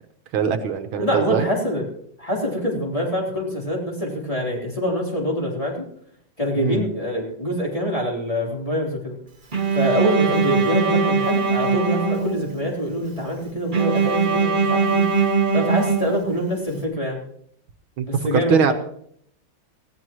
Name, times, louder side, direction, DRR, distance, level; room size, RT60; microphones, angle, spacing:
voice 1, 0.3-1.5 6.6-6.8 18.0-18.7, right 7 dB, 75° right, 8 dB, 1.8 m, -21 dB
voice 2, 1.0-1.9 2.2-5.9 6.4-9.2 9.7-17.2 18.1-18.7, equal, 15° left, -2 dB, 3.6 m, -25 dB
Bowed string instrument, 9.5-12.7 13.7-16.6, right 5 dB, 30° right, 1.2 m, -21 dB
18.5 x 15.5 x 3.1 m, 0.66 s
omnidirectional pair, 2.3 m